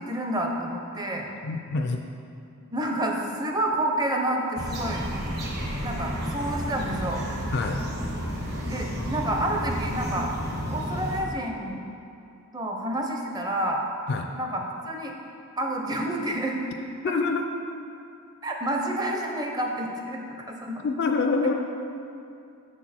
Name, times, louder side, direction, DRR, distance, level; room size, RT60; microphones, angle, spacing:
voice 1, 0.0-1.3 2.7-5.1 5.8-7.2 8.7-10.3 10.7-11.8 12.5-13.8 14.3-15.1 15.6-16.7 17.0-17.1 18.4-20.8, right 1 dB, 20° right, 1 dB, 0.6 m, -29 dB
voice 2, 1.4-2.0 7.5-7.8 14.1-14.3 17.0-17.5 20.8-21.5, left 4 dB, 50° left, 4 dB, 0.3 m, -26 dB
sound 1, 4.6-11.2, equal, 45° right, 1.1 m, -31 dB
6.4 x 6.1 x 4.3 m, 2.6 s
head